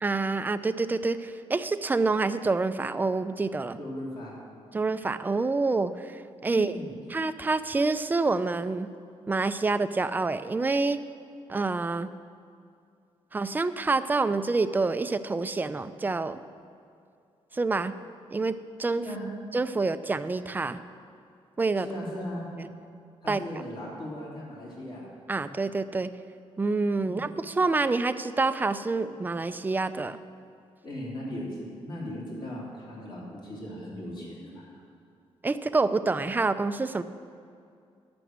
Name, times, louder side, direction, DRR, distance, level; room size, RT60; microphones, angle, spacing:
voice 1, 0.0-3.8 4.7-6.8 7.1-8.9 9.3-11.0 11.5-12.1 13.3-16.4 17.5-17.9 18.3-19.0 19.5-20.8 21.6-21.9 23.3-23.4 25.3-26.1 26.6-30.2 35.4-37.0, right 3 dB, 15° right, 11 dB, 0.4 m, -27 dB
voice 2, 3.8-4.4 6.5-7.1 19.0-19.3 21.8-22.5 23.2-25.1 27.0-27.3 30.8-34.8, left 1 dB, 45° left, -5 dB, 3.1 m, -38 dB
11.0 x 6.1 x 7.9 m, 2.4 s
cardioid pair, 115°, 11 cm